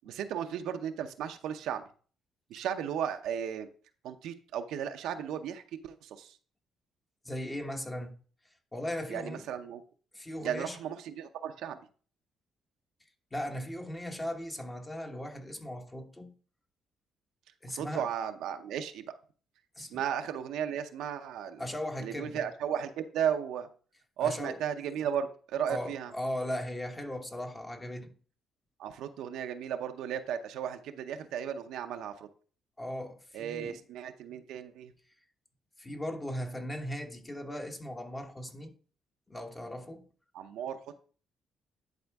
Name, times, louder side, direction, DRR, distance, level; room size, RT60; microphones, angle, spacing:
voice 1, 0.0-1.8 2.5-3.7 4.0-6.4 9.1-9.8 10.4-11.8 17.7-19.0 19.9-21.6 22.0-23.7 24.2-26.1 28.8-32.3 33.3-34.9 40.3-40.9, right 9 dB, 85° right, 0.7 m, -35 dB
voice 2, 7.2-8.1 8.7-9.5 10.1-10.8 13.3-16.3 17.6-18.1 19.8-20.0 21.6-22.5 24.2-24.6 25.7-28.1 32.8-33.8 35.8-38.7 39.3-40.1, left 1 dB, 20° left, 1.2 m, -38 dB
10.5 x 4.3 x 3.5 m
cardioid pair, 90°, 0 cm